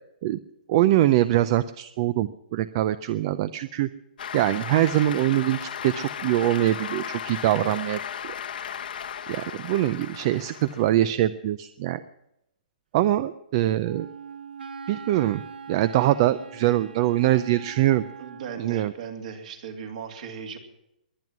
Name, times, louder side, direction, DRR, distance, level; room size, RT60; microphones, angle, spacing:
voice 1, 0.7-3.9 4.3-8.3 9.3-12.0 12.9-14.1 14.9-15.4 15.7-18.0 18.6-18.9, right 14 dB, 35° right, 15 dB, 0.5 m, -23 dB
Cheering / Applause, 4.2-11.0, left 8 dB, 70° left, 1.1 m, -36 dB
Wind instrument woodwind instrument, 13.8-18.6, right 6 dB, 90° right, 1.2 m, -42 dB
voice 2, 18.2-20.6, right 6 dB, 50° right, 4 dB, 2.7 m, -37 dB
21.5 x 9.4 x 6.1 m, 0.84 s
hypercardioid pair, 160°, 5 cm